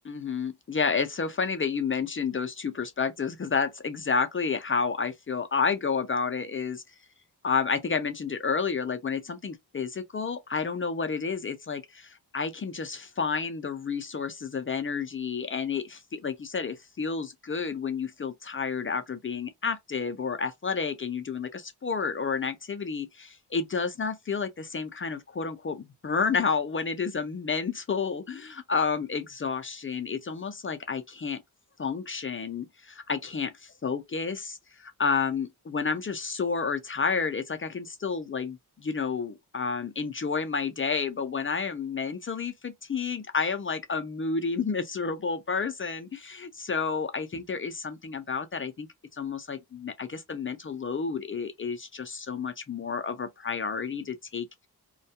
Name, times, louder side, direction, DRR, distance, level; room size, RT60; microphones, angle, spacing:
voice 1, 0.0-6.8 7.4-31.4 31.8-48.9 49.1-54.5, left 5 dB, 35° left, 0.4 m, -30 dB
2.2 x 2.1 x 2.7 m
wide cardioid pair, 85°, 40 cm